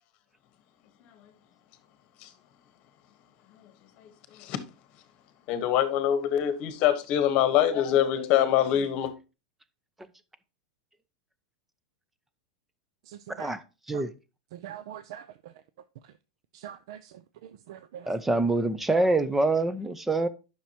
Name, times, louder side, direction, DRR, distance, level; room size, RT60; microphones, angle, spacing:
voice 1, 5.5-9.1, left 10 dB, 35° left, 1.2 m, -24 dB
voice 2, 13.1-13.5 13.9-14.0 14.5-15.2 16.5-17.1 17.4-18.1, right 10 dB, 60° right, 0.5 m, -43 dB
voice 3, 18.1-20.3, right 2 dB, 5° right, 0.5 m, -25 dB
10.5 x 6.2 x 2.9 m
supercardioid pair, 165°, 3 cm